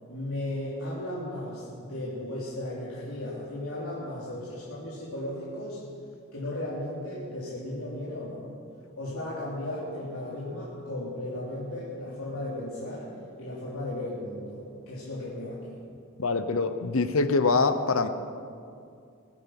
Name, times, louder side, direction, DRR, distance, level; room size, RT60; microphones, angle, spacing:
voice 1, 0.1-5.8 6.3-8.5 8.9-15.8, left 1 dB, 90° left, -8 dB, 3.3 m, -35 dB
voice 2, 16.2-18.1, left 3 dB, 70° left, 10 dB, 0.9 m, -24 dB
22.0 x 9.0 x 6.0 m, 2.4 s
head